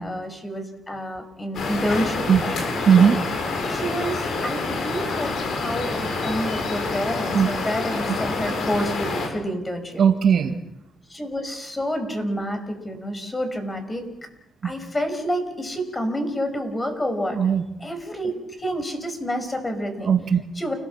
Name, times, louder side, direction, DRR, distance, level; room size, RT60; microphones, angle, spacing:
voice 1, 0.0-2.8 3.7-10.0 11.1-14.0 14.6-17.4 17.8-20.1 20.6-20.7, equal, 20° left, 7 dB, 5.6 m, -28 dB
sound 1, 1.5-9.3, left 3 dB, 65° left, 7.6 m, -27 dB
voice 2, 10.0-10.5 14.6-14.7 17.3-17.6 20.0-20.4, right 7 dB, 55° right, 6 dB, 1.9 m, -18 dB
29.5 x 18.0 x 7.4 m, 0.90 s
cardioid pair, 90°, 0 cm